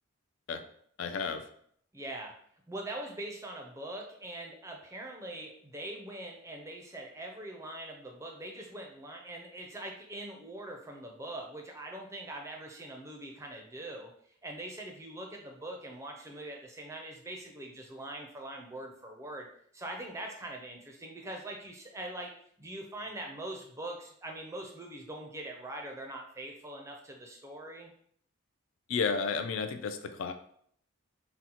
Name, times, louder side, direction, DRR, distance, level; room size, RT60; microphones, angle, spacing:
voice 1, 1.0-1.5 28.9-30.3, left 5 dB, 65° left, 8 dB, 0.3 m, -32 dB
voice 2, 1.9-2.3 2.7-14.1 14.4-19.5 19.7-22.3 22.6-27.9, right 1 dB, 15° right, 1 dB, 0.4 m, -42 dB
3.9 x 2.1 x 2.8 m, 0.64 s
head